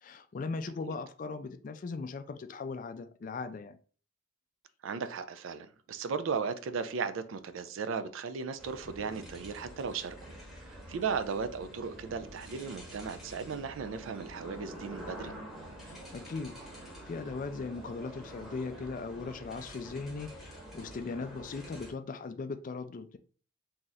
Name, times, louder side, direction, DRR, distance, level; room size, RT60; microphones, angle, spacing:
voice 1, 0.0-3.8 15.9-23.2, left 4 dB, 40° left, 0.3 m, -39 dB
voice 2, 4.8-10.2 10.6-15.3, right 5 dB, 80° right, 0.4 m, -36 dB
sound 1, 8.6-21.9, right 1 dB, ahead, 0.9 m, -47 dB
2.8 x 2.4 x 4.0 m
head